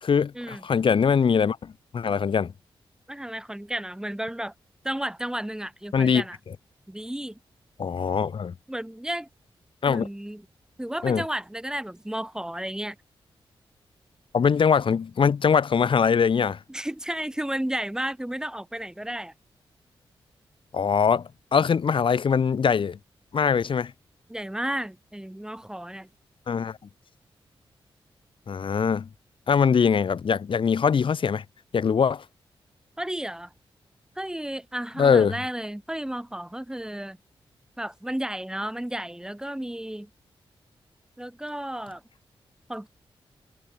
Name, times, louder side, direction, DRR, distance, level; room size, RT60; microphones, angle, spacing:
voice 1, 0.0-2.5 5.9-6.2 7.8-8.5 9.8-10.1 11.0-11.2 14.3-16.6 20.7-23.0 23.3-23.9 26.5-26.8 28.5-29.1 29.5-31.4 31.7-32.2 35.0-35.3, left 6 dB, 65° left, 2.8 m, -22 dB
voice 2, 3.1-4.5 4.8-6.4 6.9-7.4 8.7-9.3 9.9-10.5 10.8-13.0 16.7-19.3 24.3-26.1 33.0-33.5 34.2-37.2 37.8-40.1 41.2-42.0 42.7-42.9, right 1 dB, 5° right, 3.5 m, -33 dB
cardioid pair, 80°, 10 cm